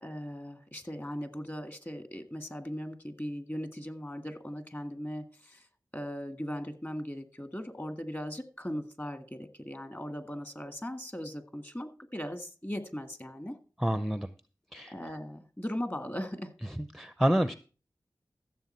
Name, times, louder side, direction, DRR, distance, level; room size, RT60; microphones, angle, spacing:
voice 1, 0.0-5.7 5.9-13.6 14.9-16.5, equal, 25° left, 8 dB, 1.7 m, -38 dB
voice 2, 13.8-14.3 14.7-14.9 16.8-17.5, equal, ahead, 11 dB, 0.6 m, -28 dB
14.5 x 7.1 x 4.4 m, 0.36 s
cardioid pair, 45°, 8 cm